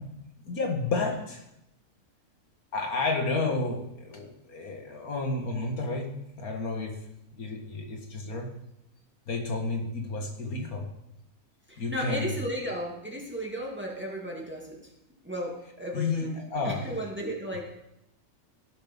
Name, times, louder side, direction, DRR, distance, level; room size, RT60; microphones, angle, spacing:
voice 1, 0.0-1.4 2.7-7.0 7.3-8.5 9.3-10.9 11.8-12.4 15.9-16.8, left 3 dB, 80° left, 3 dB, 2.3 m, -31 dB
voice 2, 11.7-14.9 15.2-17.6, equal, 5° right, -1 dB, 2.3 m, -35 dB
17.5 x 6.7 x 5.4 m, 0.81 s
omnidirectional pair, 1.5 m